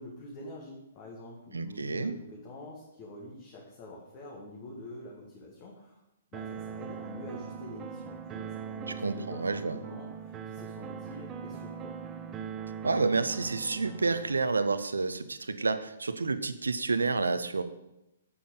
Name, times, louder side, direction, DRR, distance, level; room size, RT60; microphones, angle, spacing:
voice 1, 0.0-6.0 6.3-12.0, left 1 dB, 30° left, -2 dB, 1.9 m, -46 dB
voice 2, 1.5-2.1 9.0-9.8 12.8-17.6, right 3 dB, 70° right, 12 dB, 0.7 m, -29 dB
sound 1, 6.3-14.3, right 7 dB, 20° right, 0.7 m, -41 dB
8.7 x 8.5 x 3.9 m, 0.88 s
figure-of-eight pair, 120°, 0 cm